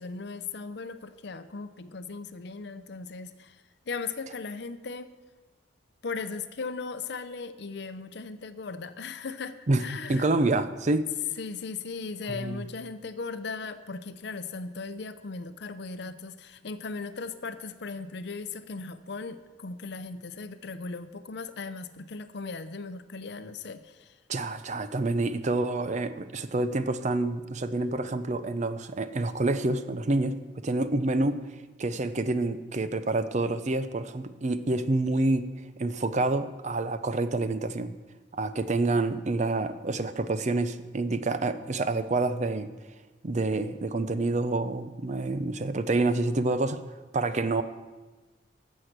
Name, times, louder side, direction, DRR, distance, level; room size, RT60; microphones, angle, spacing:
voice 1, 0.0-5.1 6.0-10.3 11.4-24.2, left 4 dB, 65° left, 11 dB, 0.6 m, -38 dB
voice 2, 10.1-11.1 12.3-12.6 24.3-30.4 30.6-31.4 31.8-35.5 35.8-37.9 38.3-42.7 43.2-46.8 47.1-47.6, right 2 dB, 40° right, 12 dB, 0.6 m, -27 dB
14.5 x 6.5 x 6.0 m, 1.2 s
head